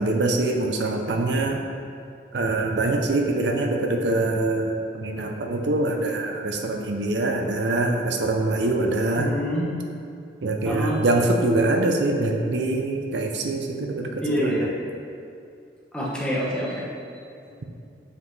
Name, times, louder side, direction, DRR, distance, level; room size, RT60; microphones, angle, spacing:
voice 1, 0.0-1.6 2.3-9.3 10.4-14.6, right 2 dB, 70° right, 2 dB, 0.6 m, -24 dB
voice 2, 9.2-9.7 10.6-11.0 14.2-14.7 15.9-16.8 17.4-17.5, equal, 5° left, -6 dB, 1.2 m, -26 dB
7.1 x 5.5 x 3.2 m, 2.4 s
head